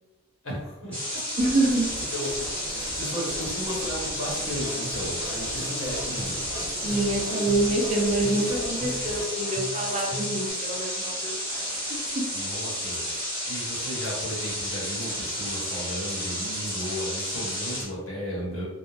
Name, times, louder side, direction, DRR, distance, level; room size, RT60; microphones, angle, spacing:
voice 1, 0.4-0.9 2.1-6.3 12.3-13.0 13.5-18.6, equal, 65° left, -5 dB, 1.1 m, -34 dB
sound 1, 0.9-17.8, equal, 5° left, 0.9 m, -32 dB
voice 2, 1.4-1.9 6.8-12.2, right 2 dB, 30° right, -1 dB, 0.4 m, -26 dB
sound 2, 1.4-9.2, right 1 dB, 65° right, 0.7 m, -40 dB
sound 3, 4.6-10.5, equal, 90° left, 1.3 m, -39 dB
2.5 x 2.0 x 3.1 m, 1.1 s
head